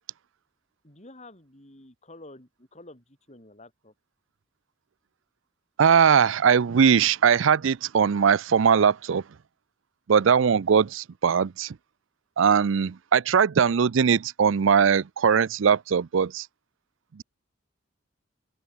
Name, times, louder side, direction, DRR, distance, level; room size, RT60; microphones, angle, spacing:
voice 1, 0.8-3.9, left 2 dB, 35° left, 5.8 m, -49 dB
voice 2, 5.8-9.2 10.1-11.8 12.4-16.5, right 7 dB, 70° right, 0.5 m, -20 dB
open air
head